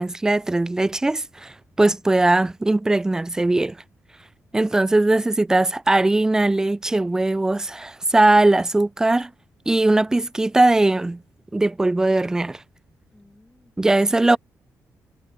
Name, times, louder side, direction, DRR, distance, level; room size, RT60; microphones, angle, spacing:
voice 1, 0.0-3.8 4.5-9.3 9.7-11.2 11.5-12.6 13.8-14.4, right 2 dB, 10° right, 0.3 m, -20 dB
voice 2, 13.1-13.7 14.0-14.4, left 1 dB, 10° left, 6.5 m, -51 dB
wide cardioid pair, 165°, 6 cm